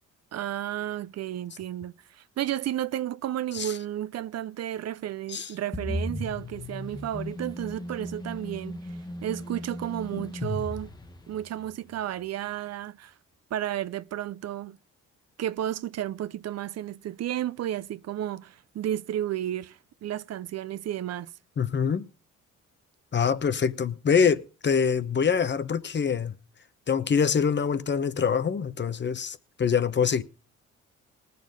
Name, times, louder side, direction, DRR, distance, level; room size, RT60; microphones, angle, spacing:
voice 1, 0.3-10.9 11.3-13.1 13.5-14.8 15.4-21.3, right 12 dB, 55° right, 0.6 m, -32 dB
sound 1, 5.7-11.7, left 1 dB, 15° left, 1.2 m, -36 dB
voice 2, 21.6-22.1 23.1-26.3 26.9-30.2, left 6 dB, 35° left, 0.9 m, -25 dB
19.0 x 6.8 x 5.2 m
cardioid pair, 90°, 30 cm